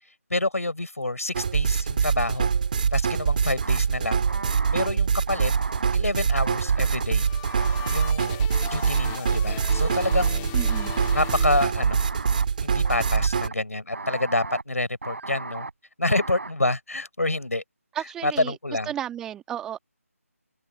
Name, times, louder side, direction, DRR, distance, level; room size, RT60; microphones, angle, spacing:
voice 1, 0.3-2.5 2.9-4.2 4.7-5.5 5.9-7.3 7.9-8.4 8.6-10.5 11.1-12.0 12.6-15.7 16.0-17.6 18.2-18.9, left 2 dB, 70° left, 5.0 m, -27 dB
sound 1, 1.3-13.5, right 6 dB, 35° right, 2.3 m, -24 dB
sound 2, 3.6-3.8 4.2-4.9 5.3-6.0 6.3-7.0 7.4-8.1 8.5-9.2 9.6-10.3 10.7-11.4 11.8-12.5 12.8-13.5 13.9-14.6 15.0-15.7 16.1-16.5, right 3 dB, 55° right, 4.0 m, -36 dB
sound 3, 6.7-12.3, left 40 dB or more, 10° left, 2.7 m, -40 dB
voice 2, 10.5-10.9 17.9-18.6 18.9-19.8, right 10 dB, 5° right, 2.1 m, -33 dB
figure-of-eight pair, 155°, 8 cm